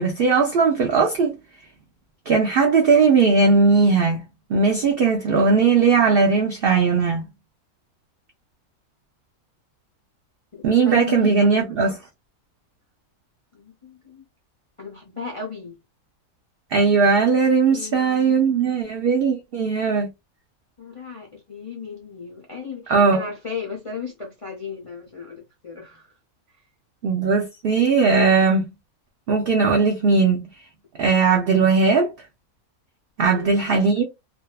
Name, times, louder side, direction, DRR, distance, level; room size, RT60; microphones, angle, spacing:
voice 1, 0.0-1.4 2.3-4.2 4.5-7.2 10.6-11.9 16.7-20.1 22.9-23.2 27.0-28.7 29.3-30.5 31.0-32.1 33.2-34.0, right 4 dB, 85° right, 0.5 m, -18 dB
voice 2, 10.8-11.7 13.5-14.2 14.8-15.8 17.7-19.0 20.8-26.1 33.3-33.8, left 5 dB, 60° left, 0.3 m, -35 dB
2.6 x 2.3 x 2.2 m
omnidirectional pair, 1.6 m